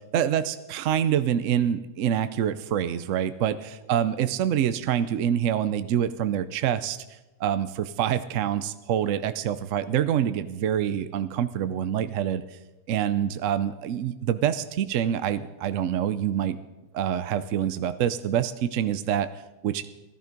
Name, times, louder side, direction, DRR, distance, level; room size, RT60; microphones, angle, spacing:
voice 1, 0.1-12.4 12.9-16.6 16.9-19.9, right 9 dB, 65° right, 12 dB, 0.8 m, -26 dB
16.0 x 14.0 x 5.2 m, 1.1 s
omnidirectional pair, 1.8 m